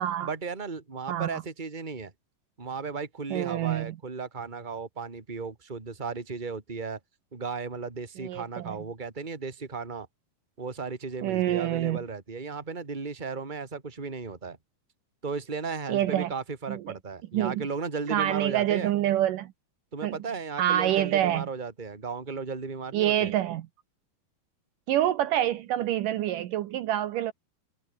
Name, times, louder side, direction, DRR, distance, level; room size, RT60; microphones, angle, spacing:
voice 1, 0.2-2.1 2.6-7.0 7.3-10.1 10.6-14.6 15.2-18.9 19.9-23.3, right 5 dB, 15° right, 2.4 m, -35 dB
voice 2, 1.1-1.4 3.3-4.0 8.2-8.8 11.2-12.0 15.9-16.3 16.7-16.8 17.3-17.6 18.1-19.5 20.0-20.2 20.6-21.4 22.9-23.7 24.9-27.3, right 12 dB, 70° right, 2.4 m, -26 dB
omnidirectional pair, 4.2 m